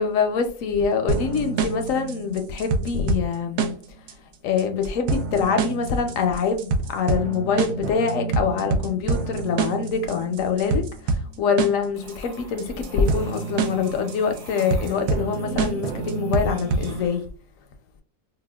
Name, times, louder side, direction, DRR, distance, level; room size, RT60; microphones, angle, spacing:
voice 1, 0.0-3.8 4.4-10.8 11.1-17.2, left 6 dB, 70° left, 0.8 m, -25 dB
sound 1, 1.1-17.1, right 4 dB, 80° right, 1.1 m, -27 dB
sound 2, 12.0-17.2, right 2 dB, 45° right, 0.5 m, -40 dB
4.8 x 2.2 x 2.2 m
omnidirectional pair, 1.7 m